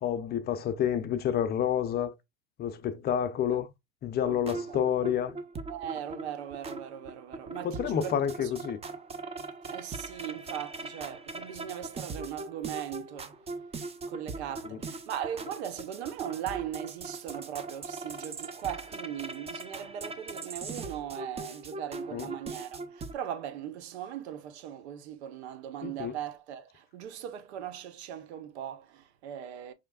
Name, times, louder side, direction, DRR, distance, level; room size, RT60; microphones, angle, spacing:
voice 1, 0.0-2.1 2.6-3.7 4.0-5.4 7.6-8.8 22.1-22.3 25.8-26.1, left 9 dB, 30° left, 0.5 m, -29 dB
sound 1, 4.2-23.1, right 3 dB, 20° right, 0.6 m, -41 dB
voice 2, 5.7-8.1 8.4-8.5 9.7-13.4 14.1-29.7, right 10 dB, 75° right, 0.8 m, -39 dB
4.9 x 3.2 x 2.3 m
hypercardioid pair, 105°, 33 cm